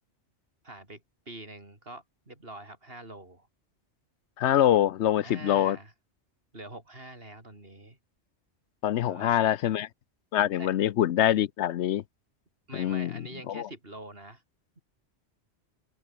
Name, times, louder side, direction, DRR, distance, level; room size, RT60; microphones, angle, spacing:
voice 1, 0.6-3.5 5.2-5.9 6.5-8.0 9.0-9.5 10.6-10.7 12.7-14.4, right 2 dB, 60° right, 5.3 m, -45 dB
voice 2, 4.4-5.8 8.8-9.9 10.3-12.0 12.7-13.1 13.5-13.7, left 11 dB, 90° left, 1.0 m, -24 dB
open air
omnidirectional pair, 1.1 m